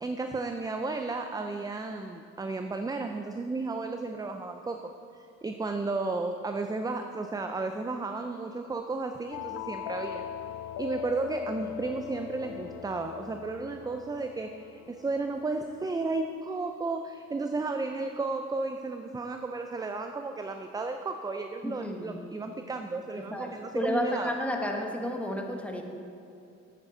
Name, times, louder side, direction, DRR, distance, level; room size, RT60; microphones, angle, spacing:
voice 1, 0.0-10.2 10.8-24.3, right 3 dB, 15° right, 6 dB, 0.4 m, -33 dB
sound 1, 9.3-15.8, left 11 dB, 75° left, 0.5 m, -40 dB
voice 2, 21.6-22.2 23.2-25.8, left 1 dB, 5° left, 1 dB, 1.2 m, -32 dB
9.1 x 8.6 x 3.9 m, 2.6 s
cardioid pair, 90°, 30 cm